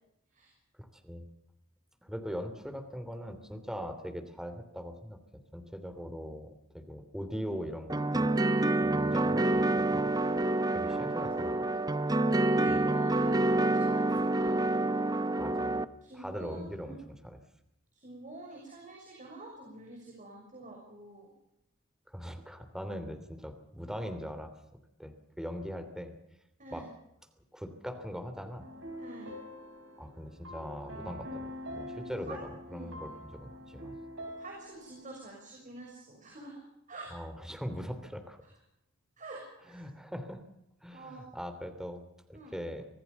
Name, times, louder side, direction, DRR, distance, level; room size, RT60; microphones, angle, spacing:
voice 1, 0.8-1.3 2.0-5.2 5.5-8.4 8.8-11.7 12.6-12.9 15.4-15.8 16.1-17.0 17.2-17.4 22.1-24.5 25.0-26.1 26.7-26.8 27.5-28.7 30.0-34.0 37.1-38.4 39.7-40.4 40.8-42.0 42.3-42.9, equal, 5° right, 7 dB, 3.0 m, -41 dB
sound 1, 7.9-15.8, right 2 dB, 20° right, 0.8 m, -27 dB
voice 2, 11.1-11.5 12.4-14.6 16.0-17.0 17.9-21.3 26.6-26.9 29.0-29.3 32.3-32.4 32.7-32.9 34.4-36.6 36.9-37.1 39.2-39.9 40.9-41.2 42.3-42.5, right 2 dB, 40° right, -1 dB, 6.5 m, -47 dB
sound 2, 28.6-35.1, equal, 65° right, 5.9 m, -45 dB
25.5 x 17.0 x 7.0 m, 0.82 s
head